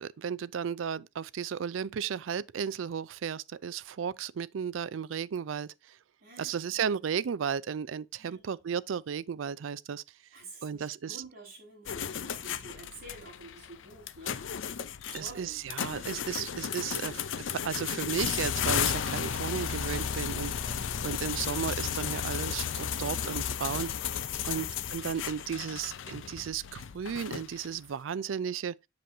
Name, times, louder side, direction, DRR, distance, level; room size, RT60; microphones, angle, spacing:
voice 1, 0.0-6.0 6.4-10.0 10.6-11.2 15.1-17.2 17.5-20.5 21.0-23.9 24.4-28.8, right 7 dB, 85° right, 0.4 m, -34 dB
voice 2, 6.2-6.9 8.2-8.5 10.3-14.8 15.1-15.6 20.6-20.9 24.4-24.7, right 2 dB, 50° right, 4.9 m, -50 dB
sound 1, 11.9-27.8, left 8 dB, 75° left, 0.5 m, -34 dB
7.8 x 6.8 x 2.7 m
head